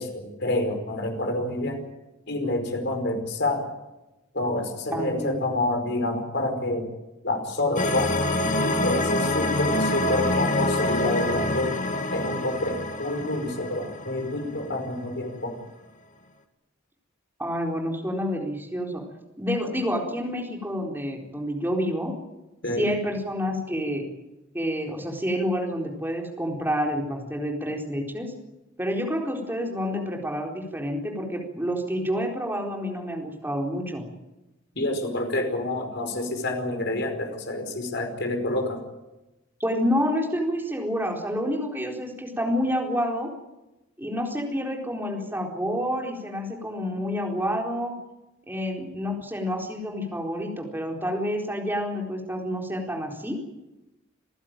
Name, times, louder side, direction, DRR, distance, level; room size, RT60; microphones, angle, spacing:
voice 1, 0.0-1.8 2.3-3.7 4.3-6.9 7.2-8.1 8.6-11.7 12.1-15.6 22.6-22.9 34.7-38.8, left 2 dB, 55° left, 4 dB, 5.1 m, -28 dB
voice 2, 4.9-5.4 17.4-19.0 19.4-22.1 22.7-24.0 24.5-28.3 28.8-34.0 39.6-43.3 44.0-47.9 48.5-53.4, equal, 10° right, 0 dB, 4.3 m, -28 dB
sound 1, 7.8-14.8, left 1 dB, 40° left, 2.0 m, -26 dB
27.5 x 15.0 x 9.1 m, 1.0 s
head